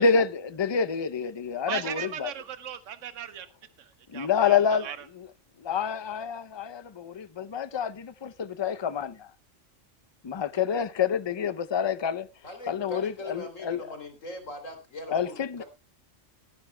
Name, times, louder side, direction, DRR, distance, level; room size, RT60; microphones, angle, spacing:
voice 1, 0.0-2.3 4.1-4.9 5.2-5.3 5.6-9.3 10.2-12.3 12.7-13.9 15.1-15.6, left 6 dB, 45° left, 0.3 m, -27 dB
voice 2, 1.7-3.5 3.8-4.6 4.8-5.0, right 9 dB, 70° right, 1.3 m, -37 dB
voice 3, 12.4-15.7, left 1 dB, 80° left, 3.4 m, -40 dB
19.5 x 10.5 x 2.2 m
omnidirectional pair, 1.3 m